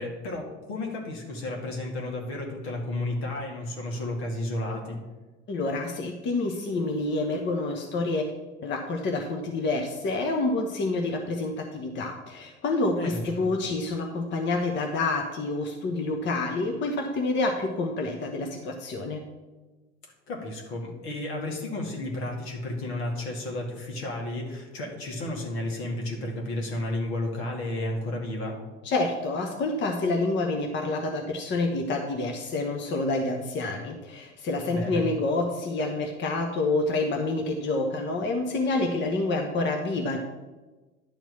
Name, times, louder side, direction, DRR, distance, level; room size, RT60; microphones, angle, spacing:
voice 1, 0.0-5.0 12.9-13.6 20.3-28.6 34.6-35.1, left 1 dB, 65° left, 0 dB, 2.3 m, -32 dB
voice 2, 5.5-8.2 8.6-19.2 28.8-40.2, left 2 dB, 30° left, 2 dB, 1.1 m, -28 dB
11.0 x 4.6 x 6.9 m, 1.2 s
figure-of-eight pair, 70°, 35 cm